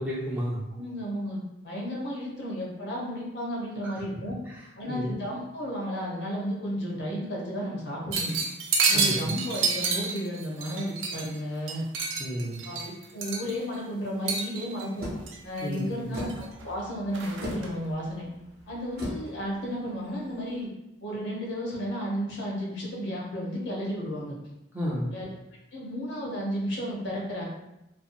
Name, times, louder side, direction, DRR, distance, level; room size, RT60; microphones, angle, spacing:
voice 1, 0.0-0.6 3.8-3.9 4.5-4.6 4.9-5.2 8.9-9.4 12.2-12.6 15.6-16.2 24.7-25.1, equal, 10° right, -5 dB, 0.4 m, -32 dB
voice 2, 0.8-4.4 4.8-8.3 8.9-11.8 12.6-12.8 13.1-15.1 15.4-18.3 18.7-20.7 21.0-24.4 25.1-25.3 25.7-27.5, equal, 70° left, -3 dB, 0.7 m, -33 dB
sound 1, 8.1-11.4 11.7-13.7 14.3-14.9 15.3-15.8 16.2-16.7 17.1-17.7, right 4 dB, 90° right, 0.4 m, -29 dB
sound 2, 15.0-20.6, equal, 50° right, 0.7 m, -40 dB
2.5 x 2.2 x 2.5 m, 0.92 s
head